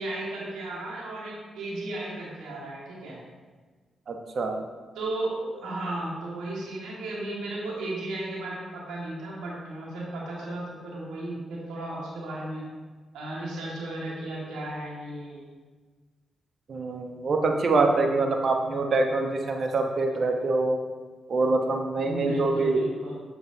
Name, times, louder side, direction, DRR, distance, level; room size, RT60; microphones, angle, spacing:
voice 1, 0.0-3.2 4.9-12.6 13.1-15.5 22.0-23.2, right 1 dB, 75° right, -4 dB, 2.0 m, -35 dB
voice 2, 4.1-4.6 16.7-20.8 21.3-22.8, right 3 dB, 55° right, 3 dB, 1.0 m, -25 dB
7.7 x 6.7 x 2.8 m, 1.4 s
hypercardioid pair, 40°, 0 cm